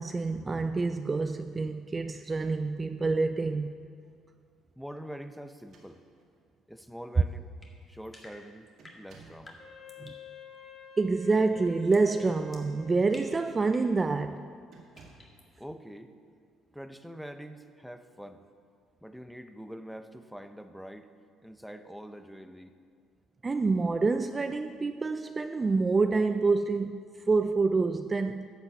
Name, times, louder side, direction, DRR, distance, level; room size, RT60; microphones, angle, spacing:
voice 1, 0.0-3.9 10.0-10.1 11.0-14.4 23.4-28.5, right 3 dB, 25° right, 0.4 m, -27 dB
voice 2, 4.8-6.0 6.7-7.5 7.9-8.7 8.9-9.6 15.6-16.1 16.7-18.4 19.0-21.1 21.4-22.8, equal, ahead, 0.7 m, -44 dB
sound 1, 5.5-6.4 7.3-7.4 7.8-8.1 8.8-9.5 12.0-12.8 13.4-13.6 14.7-15.4, right 4 dB, 65° right, 1.9 m, -57 dB
sound 2, 7.6-10.3 11.9-12.1 12.5-14.0 15.0-15.5, left 2 dB, 25° left, 1.9 m, -53 dB
Wind instrument woodwind instrument, 9.6-13.8, left 4 dB, 65° left, 3.0 m, -49 dB
10.5 x 5.7 x 7.6 m
supercardioid pair, 80°, 0 cm